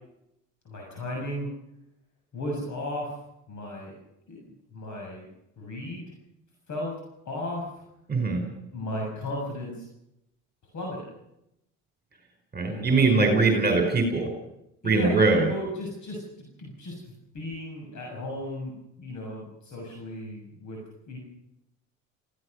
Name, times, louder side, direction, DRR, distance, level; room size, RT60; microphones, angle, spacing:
voice 1, 0.6-1.5 2.3-3.1 3.5-4.0 4.3-5.3 5.6-6.1 6.7-7.0 7.2-7.7 8.7-9.8 10.7-11.1 12.7-13.0 14.8-21.2, left 1 dB, 50° left, -1 dB, 6.8 m, -35 dB
voice 2, 8.1-8.4 12.5-14.3 14.8-15.4, right 3 dB, 25° right, 4 dB, 5.2 m, -21 dB
26.5 x 16.0 x 6.6 m, 0.84 s
supercardioid pair, 75°, 36 cm